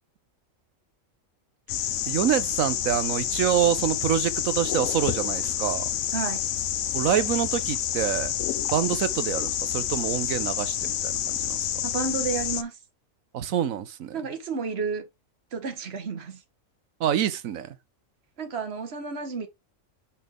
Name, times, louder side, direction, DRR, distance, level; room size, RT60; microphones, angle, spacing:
sound 1, 1.7-12.6, left 11 dB, 75° left, 1.0 m, -28 dB
voice 1, 2.1-5.9 6.9-8.3 8.7-11.6 13.3-14.2 17.0-17.8, right 10 dB, 85° right, 1.2 m, -26 dB
voice 2, 6.1-6.4 11.8-12.8 14.1-15.0 15.5-16.4 18.4-19.5, right 5 dB, 50° right, 1.6 m, -31 dB
5.7 x 5.6 x 3.6 m
omnidirectional pair, 1.4 m